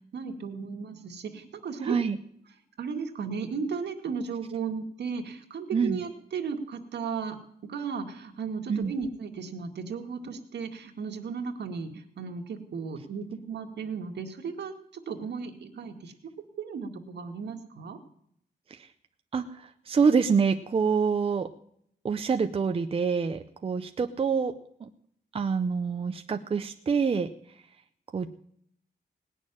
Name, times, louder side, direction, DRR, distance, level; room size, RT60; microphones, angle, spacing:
voice 1, 0.1-2.0 2.8-7.4 7.6-16.1 16.6-18.0, right 5 dB, 70° right, 4 dB, 2.0 m, -35 dB
voice 2, 1.8-2.2 5.7-6.0 8.7-8.9 18.7-18.9 19.3-21.5 22.0-24.5 24.8-24.9 25.3-27.3 28.1-28.3, right 5 dB, 30° right, 7 dB, 0.6 m, -26 dB
18.5 x 6.4 x 9.9 m, 0.69 s
wide cardioid pair, 170°, 18 cm